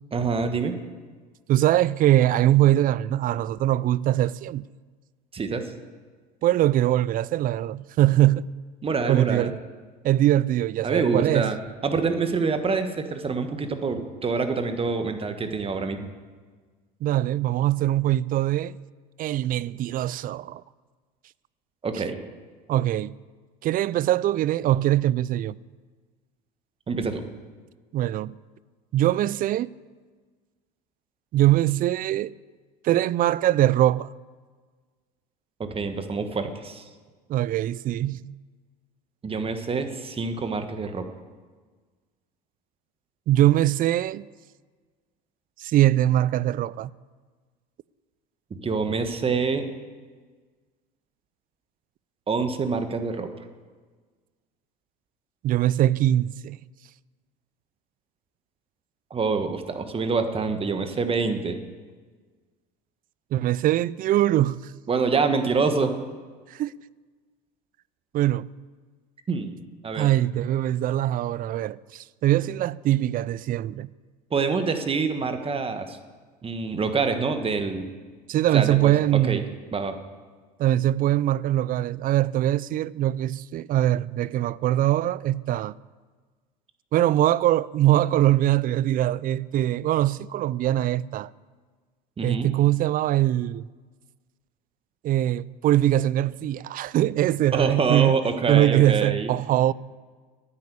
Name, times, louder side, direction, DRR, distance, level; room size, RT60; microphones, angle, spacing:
voice 1, 0.1-0.8 5.3-5.7 8.8-9.5 10.8-11.6 11.8-16.1 21.8-22.2 26.9-27.2 35.6-36.8 39.2-41.1 48.5-49.7 52.3-53.3 59.1-61.6 64.9-66.0 69.3-69.5 69.8-70.1 74.3-76.0 76.4-77.9 78.5-79.4 79.7-80.0 92.2-92.5 97.5-99.3, right 4 dB, 25° right, 1.4 m, -26 dB
voice 2, 1.5-4.6 6.4-8.5 9.1-9.5 10.0-11.5 17.0-18.8 19.2-20.6 22.7-23.1 23.6-25.6 27.9-28.3 28.9-29.7 31.3-32.3 32.8-34.1 37.3-38.3 43.3-44.3 45.6-46.9 55.4-56.6 63.3-64.7 66.5-66.7 68.1-68.5 69.9-73.9 78.3-79.4 80.6-85.7 86.9-91.3 92.2-93.7 95.0-98.1 98.5-99.7, right 13 dB, 40° right, 0.4 m, -22 dB
9.8 x 9.6 x 8.4 m
supercardioid pair, 90°, 21 cm